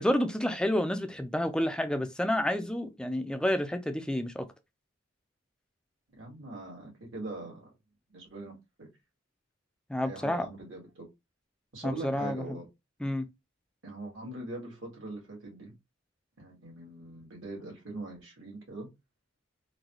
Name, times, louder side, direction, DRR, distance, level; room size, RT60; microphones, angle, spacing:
voice 1, 0.0-4.5 9.9-10.5 11.8-12.6 13.0-13.3, left 1 dB, 5° left, 0.4 m, -29 dB
voice 2, 6.1-7.7 8.1-8.5 8.8-8.9 10.0-11.1 11.7-12.7 13.8-15.7 16.4-18.9, right 2 dB, 70° right, 1.8 m, -42 dB
3.9 x 2.3 x 3.0 m
head